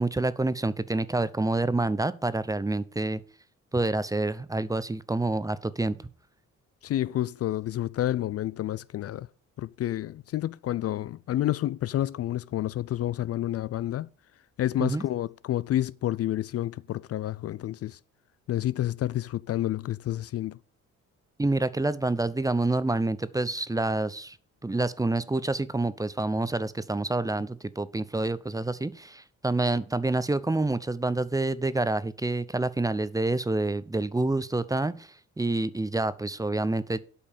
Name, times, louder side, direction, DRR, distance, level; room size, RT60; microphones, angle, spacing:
voice 1, 0.0-3.2 3.7-6.1 14.8-15.0 21.4-24.4 24.6-37.0, right 2 dB, 10° right, 0.7 m, -27 dB
voice 2, 6.8-9.3 9.6-14.1 14.6-18.0 18.5-20.6, left 13 dB, 55° left, 0.4 m, -29 dB
8.5 x 5.4 x 7.4 m
cardioid pair, 90°, 30 cm